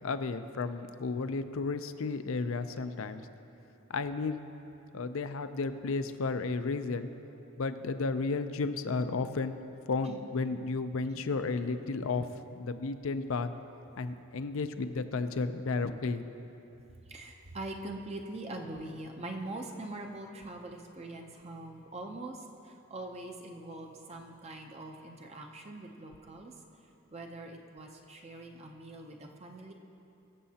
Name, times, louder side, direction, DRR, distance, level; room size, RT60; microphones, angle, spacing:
voice 1, 0.0-3.2 3.9-4.4 4.9-7.1 7.6-9.6 9.9-13.5 14.0-16.2, left 3 dB, 65° left, 10 dB, 0.5 m, -33 dB
voice 2, 17.1-26.5 27.1-29.7, right 2 dB, 30° right, 2 dB, 0.6 m, -43 dB
22.5 x 7.6 x 2.8 m, 2.8 s
head